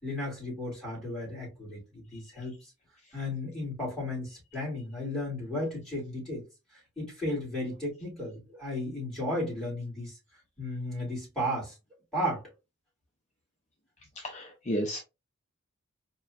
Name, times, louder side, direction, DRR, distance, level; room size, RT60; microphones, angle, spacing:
voice 1, 0.0-2.6 3.1-6.4 7.0-10.2 10.6-11.7 12.1-12.4, left 1 dB, ahead, 2.0 m, -34 dB
voice 2, 14.2-15.0, equal, 30° left, 0.5 m, -32 dB
4.3 x 2.5 x 2.2 m
head